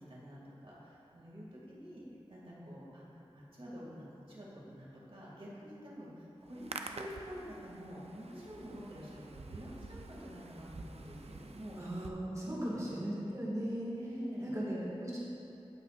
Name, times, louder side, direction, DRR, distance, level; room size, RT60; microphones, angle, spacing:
voice 1, 0.1-2.0 2.3-3.0 3.3-11.8 12.4-12.9 13.9-14.5, equal, 60° right, -6 dB, 2.4 m, -47 dB
Hands, 6.4-12.1, right 3 dB, 80° right, 0.6 m, -48 dB
voice 2, 11.8-13.9 14.4-15.2, right 1 dB, 30° right, -6 dB, 2.1 m, -37 dB
16.0 x 8.6 x 2.5 m, 2.8 s
wide cardioid pair, 75°, 10 cm